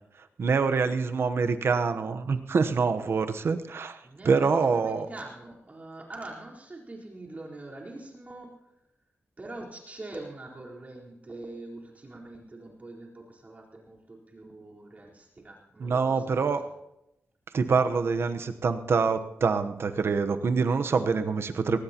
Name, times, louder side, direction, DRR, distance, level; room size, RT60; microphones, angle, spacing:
voice 1, 0.4-5.1 15.8-16.6 17.5-21.8, right 5 dB, 65° right, 8 dB, 1.0 m, -25 dB
voice 2, 4.0-8.6 9.4-16.6, right 2 dB, 35° right, -3 dB, 4.2 m, -43 dB
21.5 x 18.5 x 3.0 m, 0.87 s
wide cardioid pair, 105°, 5 cm